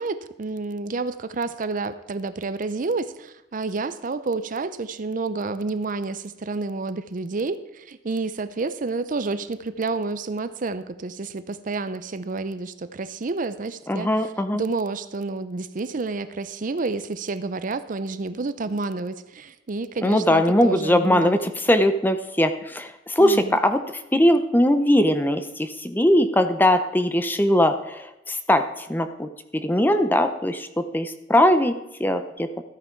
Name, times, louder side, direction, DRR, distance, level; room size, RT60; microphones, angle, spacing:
voice 1, 0.0-14.1 14.5-21.4 23.2-23.6, right 3 dB, 45° right, 13 dB, 0.5 m, -29 dB
voice 2, 13.9-14.6 20.0-23.8 24.1-31.7 32.0-32.5, left 1 dB, 10° left, 9 dB, 0.6 m, -20 dB
13.5 x 9.1 x 4.5 m, 0.96 s
head